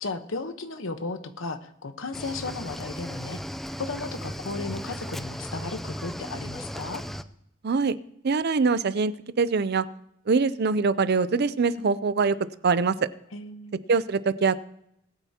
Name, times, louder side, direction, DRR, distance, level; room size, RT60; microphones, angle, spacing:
voice 1, 0.0-3.4 3.8-7.0 13.3-13.8, left 3 dB, 75° left, 9 dB, 1.0 m, -35 dB
Cricket / Waves surf, 2.1-7.2, equal, ahead, 0.4 m, -36 dB
voice 2, 7.6-8.0 8.2-9.8 10.3-12.4 12.6-12.9 13.9-14.6, right 4 dB, 55° right, 16 dB, 0.5 m, -23 dB
20.5 x 9.2 x 2.9 m, 0.78 s
head